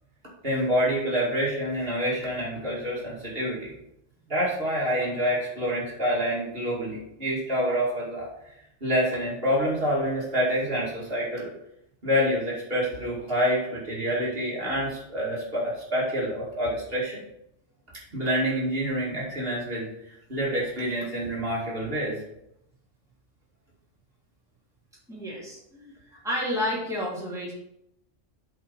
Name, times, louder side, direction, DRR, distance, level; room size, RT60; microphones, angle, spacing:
voice 1, 0.4-3.7 4.3-8.3 8.8-11.5 12.0-17.2 18.1-22.2, equal, 50° right, -5 dB, 2.5 m, -27 dB
voice 2, 25.1-25.9 26.2-27.5, left 1 dB, ahead, -6 dB, 2.3 m, -30 dB
7.8 x 4.2 x 5.2 m, 0.80 s
omnidirectional pair, 1.3 m